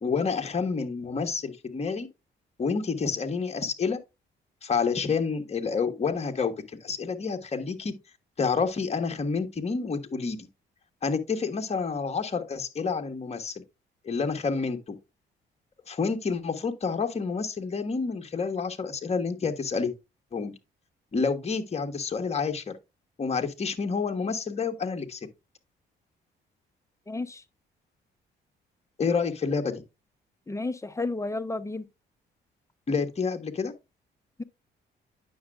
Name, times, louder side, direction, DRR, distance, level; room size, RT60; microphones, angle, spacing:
voice 1, 0.0-2.1 2.6-4.0 4.6-6.5 6.8-8.0 8.4-10.5 11.0-13.5 14.0-14.9 15.9-19.9 20.3-20.5 21.1-22.7 23.2-25.2 29.0-29.8 32.9-33.7, left 5 dB, 30° left, 1.3 m, -29 dB
voice 2, 27.1-27.4 30.5-31.8, left 2 dB, 15° left, 0.7 m, -32 dB
9.3 x 6.2 x 2.3 m
cardioid pair, 90°, 20 cm